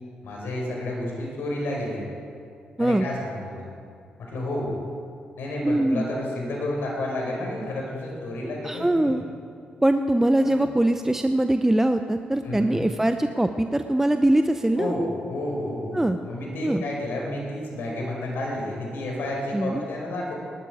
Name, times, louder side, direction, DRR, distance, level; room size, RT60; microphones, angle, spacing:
voice 1, 0.2-2.1 2.8-3.7 4.2-4.8 5.4-9.1 10.4-10.6 12.4-12.9 14.8-20.3, left 1 dB, 70° left, -2 dB, 5.0 m, -31 dB
voice 2, 5.6-6.0 8.6-9.2 9.8-14.9 15.9-16.2 16.6-16.8 19.5-19.8, right 1 dB, 10° right, 8 dB, 0.7 m, -22 dB
18.5 x 12.5 x 4.9 m, 2.3 s
supercardioid pair, 50°, 4 cm